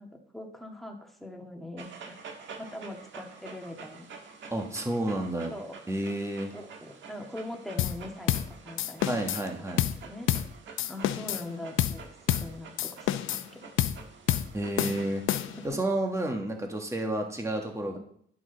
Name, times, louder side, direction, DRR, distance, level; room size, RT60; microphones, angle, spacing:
voice 1, 0.0-2.2 2.6-4.1 5.5-5.7 6.5-9.1 9.6-9.7 10.0-10.3 10.9-12.0 12.3-13.6 15.5-15.6, left 1 dB, ahead, 1 dB, 1.9 m, -42 dB
Dog, 1.8-15.7, right 5 dB, 70° right, 1.6 m, -48 dB
voice 2, 4.5-5.5 5.9-6.5 9.0-9.8 14.5-15.3 15.6-18.0, right 1 dB, 15° right, 2 dB, 1.7 m, -30 dB
sound 1, 7.8-8.0 8.3-8.5 8.8-9.4 9.8-10.0 10.3-10.5 10.8-11.5 11.8-12.0 12.3-12.5 12.8-13.5 13.8-14.0 14.3-14.5 14.8-15.7, left 12 dB, 80° left, 0.7 m, -28 dB
12.0 x 6.3 x 4.0 m, 0.63 s
cardioid pair, 90°, 20 cm